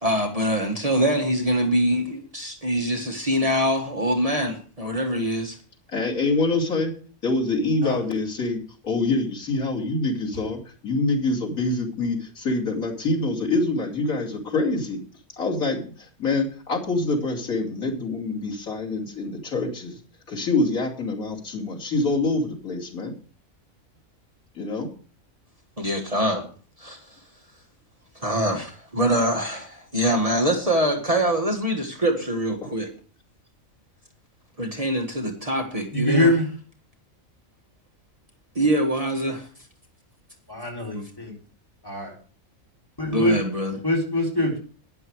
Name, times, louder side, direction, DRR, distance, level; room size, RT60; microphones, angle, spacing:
voice 1, 0.0-5.6 25.8-26.4 26.8-27.2 28.2-32.9 34.6-36.3 38.6-39.5 43.1-43.8, right 1 dB, 25° right, 1 dB, 1.7 m, -24 dB
voice 2, 5.9-6.9 7.2-15.0 15.4-20.0 20.3-23.1 24.5-24.9, left 2 dB, 90° left, -2 dB, 3.1 m, -25 dB
voice 3, 35.9-36.5 40.5-41.3 41.8-42.1 43.0-43.4 43.8-44.6, left 1 dB, 15° left, -1 dB, 3.9 m, -23 dB
11.5 x 10.0 x 4.7 m, 0.41 s
omnidirectional pair, 1.4 m